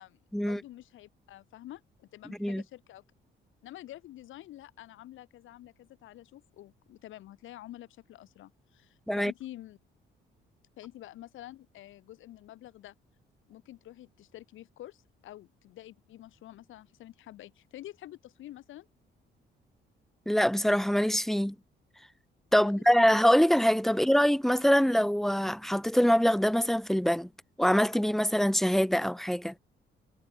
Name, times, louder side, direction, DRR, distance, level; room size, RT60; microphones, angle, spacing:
voice 1, 0.0-3.0 3.6-9.8 10.8-12.9 13.5-18.9 22.6-22.8, left 14 dB, 80° left, 1.9 m, -48 dB
voice 2, 20.3-21.5 22.5-27.3 27.6-29.5, equal, ahead, 0.6 m, -24 dB
cardioid pair, 90°, 20 cm